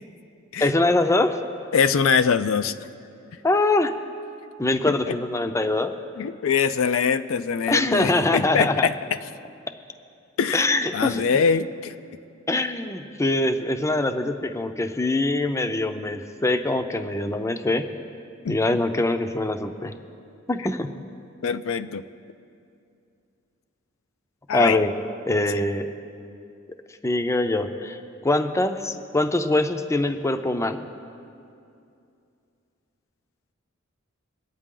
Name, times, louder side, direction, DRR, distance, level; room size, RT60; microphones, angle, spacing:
voice 1, 0.6-1.4 3.4-3.9 4.6-5.9 7.7-8.9 10.5-11.2 12.5-17.9 18.5-19.9 20.5-20.9 24.5-24.9 25.2-25.9 27.0-30.9, left 2 dB, 15° left, 8 dB, 0.5 m, -23 dB
voice 2, 1.7-2.7 4.8-5.2 6.2-8.9 10.4-10.7 10.9-11.9 18.4-18.6 21.4-22.0 24.5-24.8, left 6 dB, 75° left, 11 dB, 0.4 m, -23 dB
23.0 x 9.0 x 3.8 m, 2.5 s
head